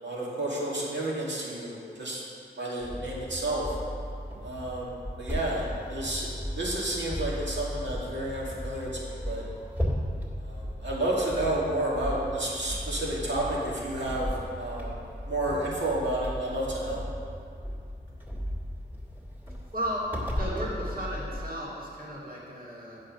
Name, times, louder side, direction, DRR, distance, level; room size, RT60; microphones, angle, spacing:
voice 1, 0.0-2.2 2.6-3.7 4.4-6.3 6.6-9.4 10.4-15.0 15.3-17.1, right 1 dB, 80° right, -5 dB, 2.3 m, -31 dB
sound 1, 2.8-21.5, equal, 10° right, 2.1 m, -36 dB
voice 2, 19.7-23.0, equal, 55° right, -6 dB, 2.6 m, -34 dB
8.6 x 6.5 x 6.1 m, 2.3 s
wide cardioid pair, 80°, 18 cm